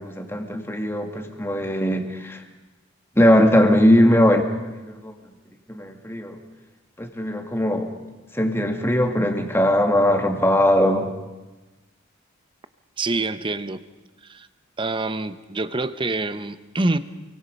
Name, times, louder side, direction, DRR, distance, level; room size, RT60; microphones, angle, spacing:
voice 1, 0.0-2.4 3.2-4.6 4.8-5.1 5.7-6.4 7.0-7.9 8.3-11.1, left 1 dB, 10° left, 4 dB, 2.3 m, -20 dB
voice 2, 13.0-13.8 14.2-14.5 14.8-17.0, right 2 dB, 25° right, 12 dB, 0.9 m, -26 dB
28.5 x 24.0 x 5.5 m, 1.1 s
head